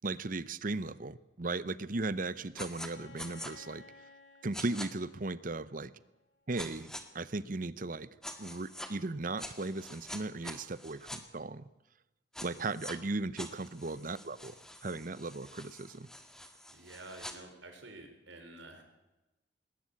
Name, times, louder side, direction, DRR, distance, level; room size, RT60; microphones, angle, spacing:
voice 1, 0.0-3.8 4.4-5.9 6.5-8.1 8.4-11.7 12.4-14.5 14.8-16.1, right 3 dB, 45° right, 17 dB, 0.8 m, -37 dB
sound 1, 2.6-2.9 3.2-3.5 4.5-4.9 6.6-7.0 8.2-8.9 9.4-11.2 12.3-12.9 13.4-17.3, left 1 dB, 5° left, 1.8 m, -45 dB
Bowed string instrument, 2.7-6.5, left 4 dB, 70° left, 2.8 m, -58 dB
voice 2, 16.7-18.8, right 2 dB, 75° right, 5 dB, 4.9 m, -50 dB
20.5 x 19.0 x 8.5 m, 1.0 s
head